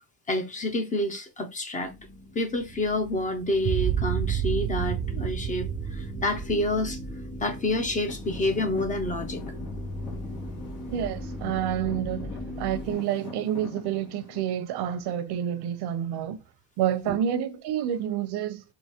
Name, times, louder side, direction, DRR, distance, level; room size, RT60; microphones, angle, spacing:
voice 1, 0.3-1.9 2.3-7.0 7.4-9.4 17.0-17.2, left 1 dB, 20° left, 0.4 m, -28 dB
sound 1, 1.8-12.9, left 1 dB, 50° left, 1.9 m, -39 dB
sound 2, 3.6-8.0, right 10 dB, 45° right, 0.4 m, -29 dB
Traffic noise roadway noise / Engine, 8.0-14.4, left 6 dB, 90° left, 1.6 m, -43 dB
voice 2, 10.9-12.3 12.6-16.4 16.8-18.6, right 10 dB, 90° right, 0.7 m, -28 dB
4.7 x 2.6 x 2.8 m
cardioid pair, 175°, 38 cm